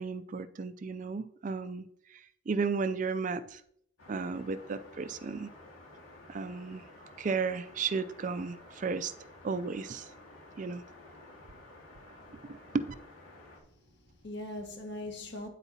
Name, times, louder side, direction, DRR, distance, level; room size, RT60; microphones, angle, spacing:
voice 1, 0.0-2.2 2.5-3.6 4.1-5.5 6.3-6.8 7.2-9.1 9.4-10.1 10.6-10.8 12.5-12.9, right 4 dB, 40° right, 0.4 m, -34 dB
sound 1, 4.0-13.6, left 2 dB, 85° left, 2.4 m, -53 dB
voice 2, 13.6-15.5, left 1 dB, 55° left, 1.7 m, -41 dB
9.0 x 8.1 x 2.8 m
head